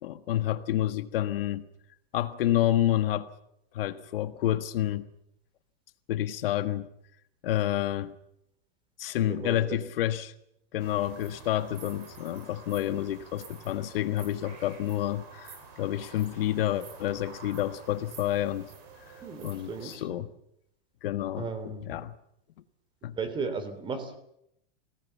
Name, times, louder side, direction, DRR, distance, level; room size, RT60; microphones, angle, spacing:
voice 1, 0.0-1.7 2.1-3.3 3.7-5.1 6.1-6.9 7.4-8.1 9.0-10.3 10.7-18.7 19.4-20.3 21.0-21.5 21.8-22.1 23.0-23.2, left 13 dB, 70° left, 11 dB, 1.6 m, -29 dB
voice 2, 9.2-9.8 19.2-20.2 21.4-21.9 23.1-24.2, right 4 dB, 15° right, 10 dB, 3.2 m, -36 dB
sound 1, 10.8-20.0, right 5 dB, 45° right, 7.4 m, -49 dB
27.0 x 18.5 x 7.3 m, 0.76 s
supercardioid pair, 160°, 30 cm